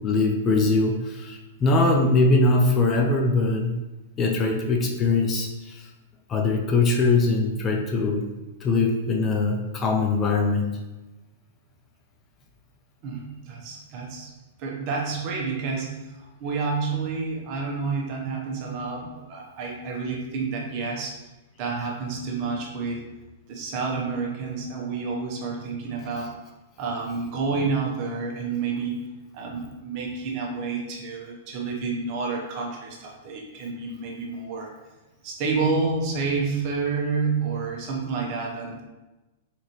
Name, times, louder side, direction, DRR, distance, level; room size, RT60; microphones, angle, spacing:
voice 1, 0.0-3.7 4.2-5.9 6.3-8.3 8.6-10.7, left 3 dB, 25° left, 1 dB, 0.6 m, -22 dB
voice 2, 13.0-14.3 14.6-21.2 21.6-23.0 23.5-26.3 26.8-29.0 29.3-34.7 35.2-38.8, right 4 dB, 45° right, 0 dB, 1.0 m, -29 dB
4.1 x 3.9 x 3.1 m, 1.1 s
figure-of-eight pair, 105°, 0 cm